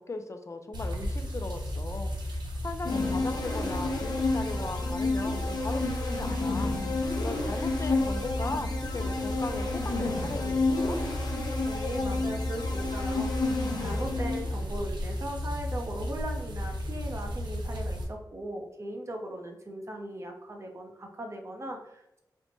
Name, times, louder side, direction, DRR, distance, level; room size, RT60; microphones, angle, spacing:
voice 1, 0.0-11.0, left 3 dB, 40° left, 7 dB, 0.4 m, -38 dB
sound 1, 0.7-18.0, equal, 75° right, 0.7 m, -34 dB
sound 2, 2.8-14.6, left 3 dB, 65° left, 0.7 m, -31 dB
voice 2, 11.6-22.2, right 1 dB, 40° right, 2 dB, 0.7 m, -39 dB
4.2 x 2.1 x 2.9 m, 0.84 s
cardioid pair, 45°, 8 cm